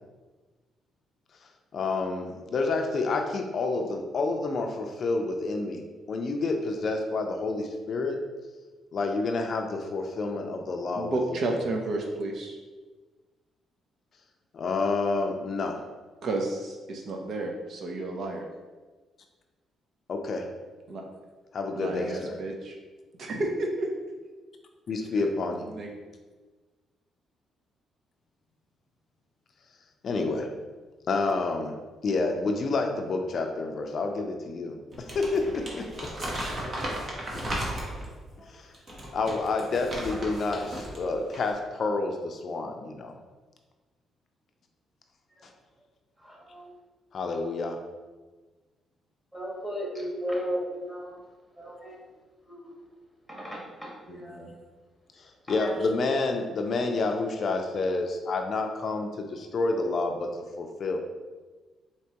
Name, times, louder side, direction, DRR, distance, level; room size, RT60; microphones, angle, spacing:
voice 1, 1.7-5.8 6.1-8.2 8.9-11.6 14.5-15.8 20.1-20.5 21.5-22.3 24.9-25.6 30.0-30.5 31.1-31.8 32.0-36.3 37.3-37.5 38.5-38.7 39.1-43.1 47.1-47.8 54.1-54.5 55.2-61.0, left 3 dB, 55° left, 4 dB, 0.4 m, -29 dB
voice 2, 10.9-12.6 16.2-18.4 20.9-21.0 21.8-22.8 23.2-23.9 25.2-25.3 25.7-25.9, right 2 dB, 60° right, 1 dB, 0.6 m, -31 dB
Crumpling crinkling, 34.9-38.1 38.7-41.0 41.3-41.5, right 1 dB, 45° right, 0.9 m, -35 dB
voice 3, 46.2-46.7 49.3-51.1 51.6-52.0 52.5-52.7 53.3-54.6 55.6-55.7, equal, 10° right, -5 dB, 1.5 m, -35 dB
4.4 x 2.8 x 2.9 m, 1.3 s
cardioid pair, 90°, 0 cm